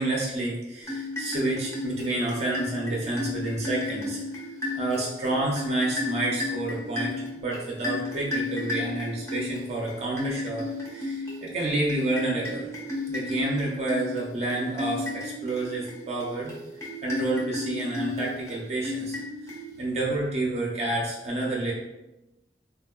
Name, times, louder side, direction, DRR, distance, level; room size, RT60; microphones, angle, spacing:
voice 1, 0.0-4.2 4.7-12.7 13.1-16.6 17.0-19.2 19.8-21.7, right 2 dB, 35° right, -3 dB, 0.5 m, -29 dB
sound 1, 0.8-20.0, left 2 dB, 15° left, 0.5 m, -34 dB
3.4 x 2.1 x 2.3 m, 0.98 s
head